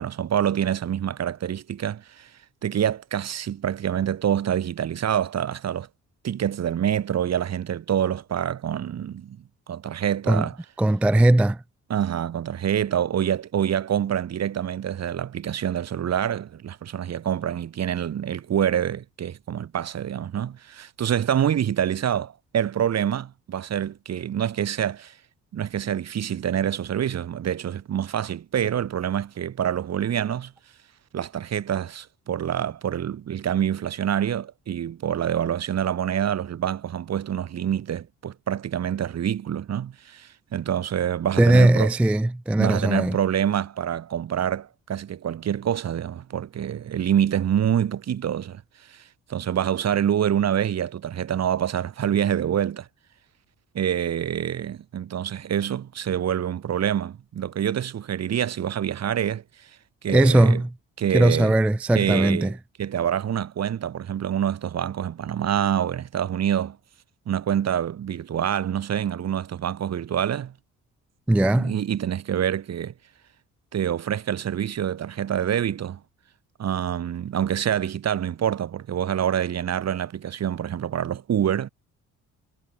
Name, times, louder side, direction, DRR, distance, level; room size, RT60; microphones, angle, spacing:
voice 1, 0.0-2.3 2.6-5.9 6.2-9.4 9.7-10.6 11.9-25.1 25.5-30.5 31.1-41.9 42.6-48.6 48.9-49.0 49.3-52.9 53.7-59.4 60.0-60.6 61.0-61.5 61.9-62.5 62.8-66.8 67.3-70.5 71.6-72.9 73.7-76.0 76.6-81.7, right 9 dB, 60° right, 2.7 m, -26 dB
voice 2, 10.8-11.6 41.4-43.2 60.1-60.7 61.1-62.5 71.3-71.7, right 1 dB, 5° right, 0.3 m, -19 dB
cardioid pair, 90°, 30 cm